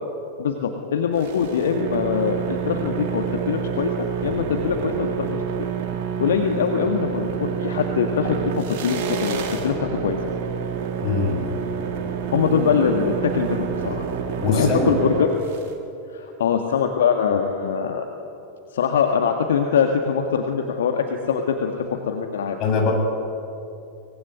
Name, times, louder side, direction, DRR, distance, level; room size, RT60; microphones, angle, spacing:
voice 1, 0.4-3.9 4.2-5.4 6.2-10.2 12.3-14.0 14.5-15.3 16.1-18.1 18.7-22.6, left 7 dB, 60° left, 4 dB, 1.9 m, -23 dB
sound 1, 1.1-15.7, right 7 dB, 45° right, 3.8 m, -28 dB
voice 2, 11.0-11.5 14.4-14.9 22.6-22.9, left 4 dB, 35° left, 2 dB, 7.4 m, -22 dB
24.0 x 21.5 x 9.6 m, 2.7 s
figure-of-eight pair, 90°, 0 cm